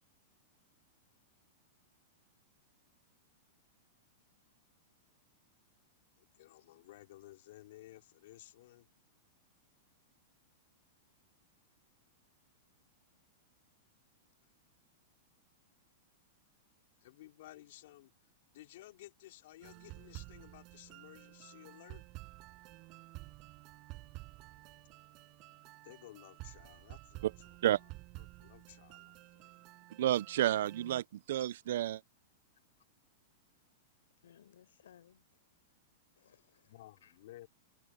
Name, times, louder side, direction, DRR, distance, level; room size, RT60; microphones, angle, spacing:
voice 1, 6.2-8.9 17.0-18.1 18.5-22.0 25.8-27.3 28.4-29.5 36.7-37.5, left 16 dB, 65° left, 3.8 m, -55 dB
sound 1, 19.6-31.0, right 23 dB, 40° right, 5.4 m, -52 dB
voice 2, 30.0-32.0, right 12 dB, 70° right, 0.5 m, -31 dB
voice 3, 34.2-35.5 36.1-37.2, left 9 dB, 90° left, 6.1 m, -63 dB
supercardioid pair, 145°, 0 cm